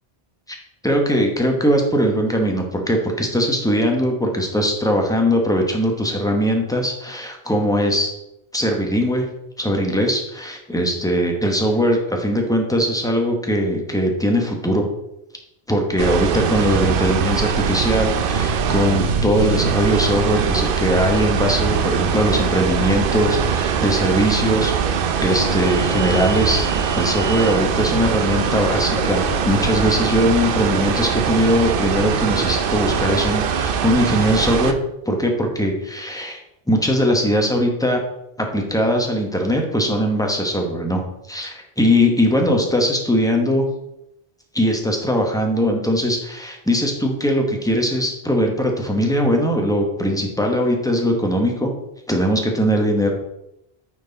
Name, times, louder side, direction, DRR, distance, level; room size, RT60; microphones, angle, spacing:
voice 1, 0.8-8.1 8.5-9.2 9.6-14.9 15.7-26.7 26.9-34.8 35.1-36.4 36.7-38.0 38.4-43.6 44.5-51.7 52.1-53.1, equal, 5° left, 2 dB, 1.1 m, -20 dB
sound 1, 16.0-34.7, right 6 dB, 65° right, 0.7 m, -22 dB
sound 2, 25.0-31.2, left 7 dB, 55° left, 0.4 m, -36 dB
9.0 x 4.5 x 4.0 m, 0.85 s
omnidirectional pair, 1.1 m